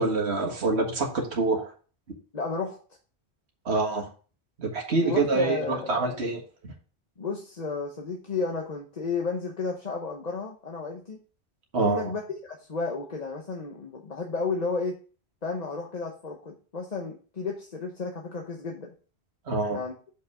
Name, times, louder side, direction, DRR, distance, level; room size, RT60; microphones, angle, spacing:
voice 1, 0.0-1.7 3.7-4.1 4.6-6.7 11.7-12.1 19.5-19.8, right 3 dB, 65° right, 1 dB, 1.8 m, -26 dB
voice 2, 2.3-2.8 5.0-6.1 7.2-11.2 11.8-15.0 15.4-18.9 19.7-19.9, left 4 dB, 40° left, 1 dB, 1.0 m, -32 dB
6.5 x 5.4 x 4.8 m, 0.38 s
omnidirectional pair, 1.2 m